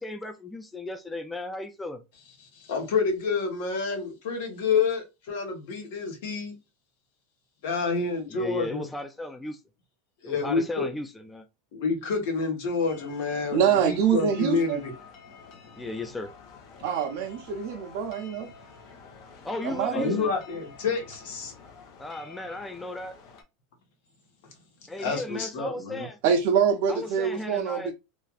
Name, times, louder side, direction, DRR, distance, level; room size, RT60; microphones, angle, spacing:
voice 1, 0.0-2.0 8.3-9.6 10.2-11.4 15.8-16.3 19.4-20.3 22.0-23.1 24.9-26.2 26.9-27.9, left 2 dB, 10° left, 0.4 m, -35 dB
voice 2, 2.5-6.5 7.6-8.9 10.2-10.9 11.7-14.9 19.9-21.5 25.0-26.1, left 4 dB, 70° left, 1.1 m, -28 dB
sound 1, 12.9-23.4, left 5 dB, 50° left, 0.9 m, -49 dB
voice 3, 13.5-14.8 16.8-18.5 19.6-20.2 26.2-27.9, right 7 dB, 55° right, 0.5 m, -25 dB
3.2 x 2.4 x 2.4 m
supercardioid pair, 145°, 0 cm